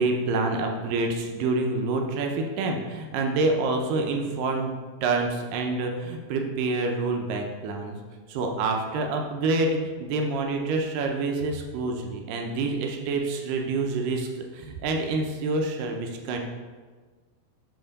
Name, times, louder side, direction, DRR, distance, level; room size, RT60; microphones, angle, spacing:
voice 1, 0.0-4.7 5.0-8.0 8.3-16.4, right 3 dB, 75° right, 2 dB, 2.1 m, -27 dB
6.9 x 3.6 x 5.2 m, 1.4 s
omnidirectional pair, 4.4 m